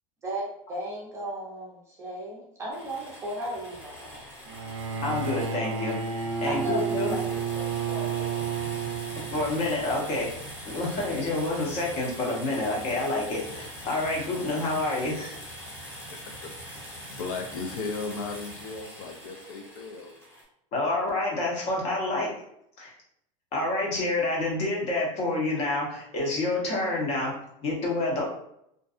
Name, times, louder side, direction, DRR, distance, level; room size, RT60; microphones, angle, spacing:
voice 1, 0.2-4.2 6.4-8.4, equal, 15° right, -4 dB, 0.5 m, -36 dB
sound 1, 2.7-20.4, equal, 15° left, 0.8 m, -42 dB
Bowed string instrument, 4.5-9.7, right 7 dB, 70° right, 0.4 m, -31 dB
voice 2, 5.0-6.0 6.4-7.2 9.3-10.3 10.6-15.4 20.7-22.3 22.8-22.9 23.5-27.3 27.6-28.3, left 2 dB, 40° left, -2 dB, 0.9 m, -28 dB
voice 3, 16.4-16.7 17.1-20.1, left 4 dB, 75° left, 3 dB, 0.5 m, -36 dB
2.6 x 2.2 x 2.4 m, 0.75 s
supercardioid pair, 155°, 17 cm